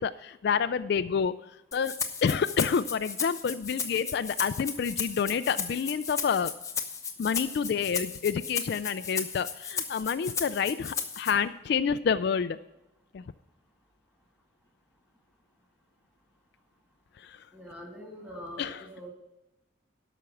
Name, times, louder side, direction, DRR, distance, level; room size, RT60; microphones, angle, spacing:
voice 1, 0.0-6.5 7.2-12.6 13.1-13.2 17.2-17.5 18.6-18.8, left 6 dB, 55° left, 12 dB, 0.3 m, -28 dB
Rattle (instrument), 1.7-11.3, left 6 dB, 15° left, 0.8 m, -35 dB
voice 2, 17.5-19.1, equal, 10° right, 0 dB, 2.3 m, -43 dB
12.5 x 5.9 x 7.0 m, 0.95 s
head